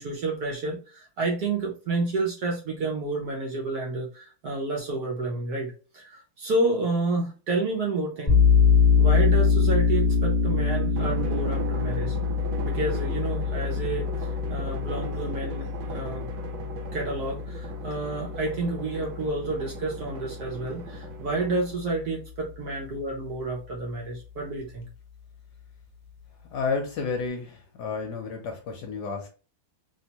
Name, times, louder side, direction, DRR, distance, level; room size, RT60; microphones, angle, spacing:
voice 1, 0.0-8.4 9.0-12.2 12.6-16.3 16.9-24.9, right 2 dB, 65° right, -1 dB, 1.1 m, -30 dB
sound 1, 8.3-19.6, left 6 dB, 15° left, 0.7 m, -24 dB
Drum, 11.0-22.0, right 4 dB, 80° right, 1.4 m, -38 dB
voice 2, 26.5-29.3, left 4 dB, 65° left, 3 dB, 1.1 m, -31 dB
3.2 x 2.8 x 2.8 m, 0.36 s
omnidirectional pair, 2.2 m